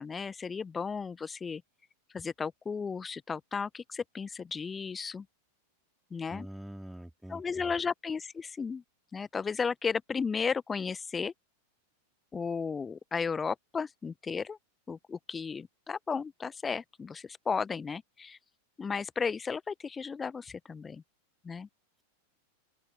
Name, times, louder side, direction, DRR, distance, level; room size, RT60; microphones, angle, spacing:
voice 1, 0.0-1.6 2.1-5.2 6.1-6.5 7.3-8.8 9.1-11.3 12.3-14.6 14.9-18.4 18.8-21.0 21.4-21.7, left 5 dB, 15° left, 1.2 m, -34 dB
voice 2, 6.3-7.7, right 1 dB, 5° right, 3.2 m, -45 dB
open air
figure-of-eight pair, 90°, 0 cm